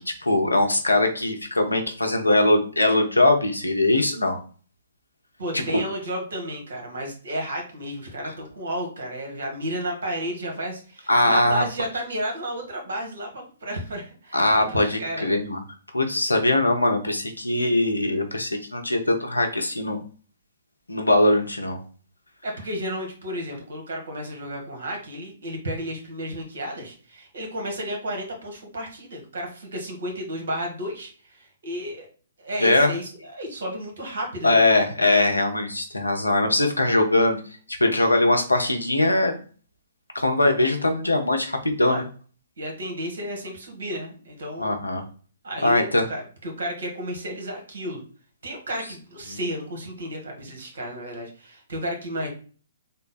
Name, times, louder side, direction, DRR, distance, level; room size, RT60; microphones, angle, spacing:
voice 1, 0.0-4.4 5.5-5.6 11.1-11.9 14.3-15.6 15.9-20.0 20.9-21.8 32.6-32.9 34.4-37.4 37.8-39.3 40.1-42.0 44.6-45.0 45.6-46.1 49.3-49.4, left 2 dB, 90° left, 4 dB, 0.8 m, -21 dB
voice 2, 5.4-15.3 22.4-32.1 32.4-34.6 41.8-42.0 42.6-44.7 45.4-48.0 48.4-52.3, equal, 65° right, 2 dB, 1.5 m, -32 dB
3.7 x 2.2 x 4.1 m, 0.39 s
figure-of-eight pair, 125°, 0 cm